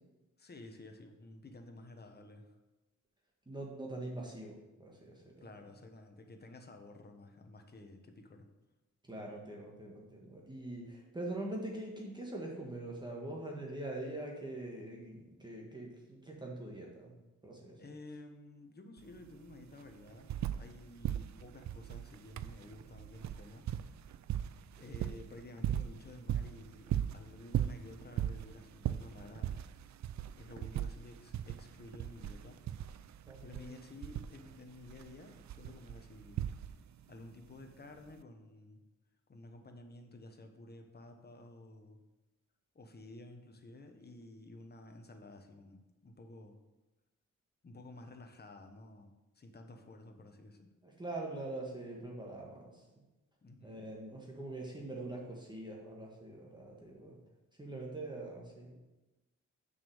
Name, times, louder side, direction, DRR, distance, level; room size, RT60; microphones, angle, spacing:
voice 1, 0.4-2.6 5.4-8.5 17.8-23.7 24.8-29.6 30.4-32.6 33.4-36.4 37.1-38.8 39.3-42.0 42.7-46.6 47.6-50.7 53.4-53.8, left 2 dB, 30° left, 4 dB, 1.1 m, -52 dB
voice 2, 3.5-5.3 9.0-17.1 17.4-17.8 33.3-33.7 50.8-52.8 53.6-57.2 57.6-58.8, right 2 dB, 15° right, -2 dB, 1.6 m, -43 dB
sound 1, 19.0-19.1 19.3-20.8 21.0-37.0 38.1-38.2, right 10 dB, 65° right, 0.4 m, -38 dB
6.7 x 5.5 x 7.1 m, 1.1 s
wide cardioid pair, 125°, 30 cm